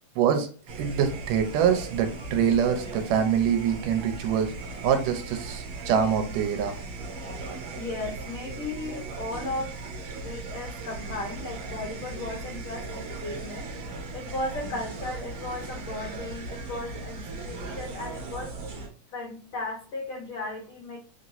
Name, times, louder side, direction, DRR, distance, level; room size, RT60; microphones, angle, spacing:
voice 1, 0.2-0.5 0.8-4.5 4.8-6.8, right 8 dB, 90° right, 7 dB, 2.3 m, -24 dB
sound 1, 0.7-18.9, right 3 dB, 60° right, 1.7 m, -38 dB
voice 2, 7.8-9.7 10.1-13.7 14.1-18.5 19.1-21.0, left 2 dB, 85° left, -1 dB, 1.1 m, -36 dB
5.1 x 3.1 x 2.6 m, 0.40 s
omnidirectional pair, 3.8 m